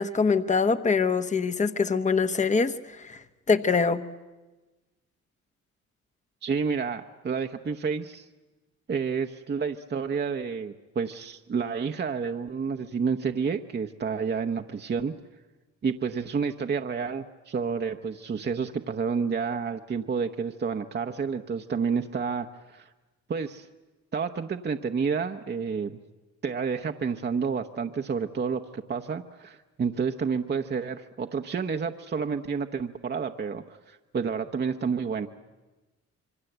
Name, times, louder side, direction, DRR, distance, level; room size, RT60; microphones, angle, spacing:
voice 1, 0.0-4.0, left 5 dB, 25° left, 11 dB, 1.0 m, -24 dB
voice 2, 6.4-8.3 8.9-15.1 15.8-22.9 23.3-23.7 24.1-25.9 26.4-35.3, right 5 dB, 35° right, 5 dB, 1.0 m, -30 dB
26.5 x 23.5 x 8.0 m, 1.2 s
cardioid pair, 90°, 30 cm